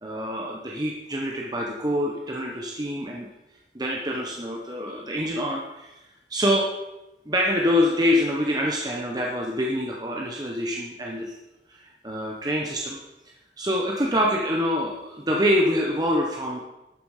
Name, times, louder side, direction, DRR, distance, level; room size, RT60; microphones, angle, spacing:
voice 1, 0.0-3.3 3.7-6.0 6.3-6.7 7.3-11.3 11.7-13.0 13.6-16.6, equal, 25° right, -1 dB, 1.2 m, -25 dB
12.0 x 9.2 x 5.0 m, 0.99 s
head